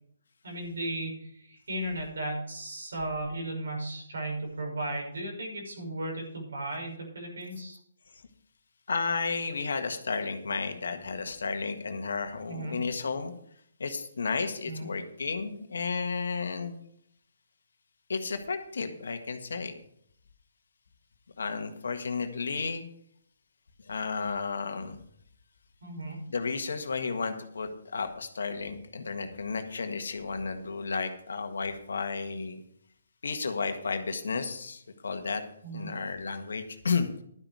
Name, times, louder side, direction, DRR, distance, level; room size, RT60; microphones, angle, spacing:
voice 1, 0.4-7.8 12.5-12.8 14.6-14.9 25.8-26.2 35.6-35.9, right 1 dB, 75° right, 0 dB, 6.1 m, -35 dB
voice 2, 8.9-13.3 13.8-16.8 18.1-19.7 21.4-22.9 23.9-25.0 26.3-32.6 33.2-35.4 35.7-37.2, left 4 dB, 75° left, 7 dB, 1.6 m, -32 dB
11.5 x 9.2 x 4.9 m, 0.67 s
hypercardioid pair, 145°, 0 cm